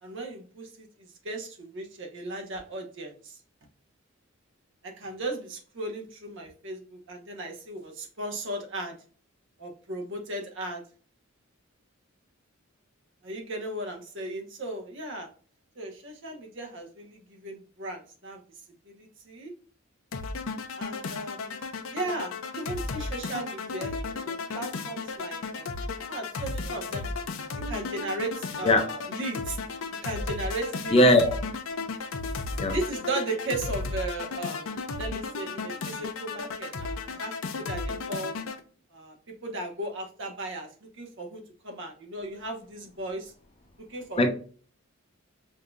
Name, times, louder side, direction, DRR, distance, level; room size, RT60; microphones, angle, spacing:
voice 1, 0.0-3.4 4.8-8.9 9.6-10.8 13.2-15.3 15.8-18.4 18.8-19.5 20.8-21.6 21.9-24.0 24.2-25.8 26.1-27.1 27.7-29.6 30.0-31.0 32.7-37.3 37.6-38.3 38.9-39.1 39.4-40.7 41.0-43.3 43.9-44.3, right 2 dB, 65° right, 1.1 m, -36 dB
sound 1, 20.1-38.6, left 4 dB, 75° left, 0.6 m, -34 dB
voice 2, 30.9-31.4 32.6-32.8 44.2-44.3, left 1 dB, 30° left, 0.6 m, -19 dB
5.1 x 2.7 x 2.4 m
head